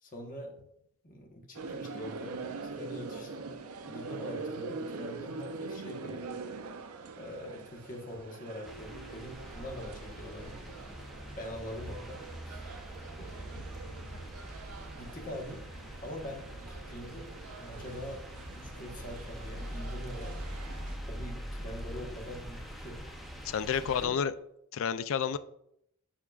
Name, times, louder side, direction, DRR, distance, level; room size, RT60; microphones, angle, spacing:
voice 1, 0.0-0.5 1.0-3.5 3.9-6.2 7.2-10.6 11.4-12.2 12.4-12.7 13.2-13.4 14.9-15.6 16.0-17.3 17.6-18.2 18.6-20.4 21.0-23.0 23.7-24.2, left 1 dB, 40° left, 1 dB, 1.2 m, -43 dB
sound 1, 1.5-21.0, right 4 dB, 75° right, 0.5 m, -44 dB
sound 2, 8.6-24.1, equal, ahead, 0.8 m, -43 dB
voice 2, 23.4-24.3 24.7-25.4, left 7 dB, 60° left, 13 dB, 0.3 m, -30 dB
7.0 x 5.8 x 2.4 m, 0.75 s
head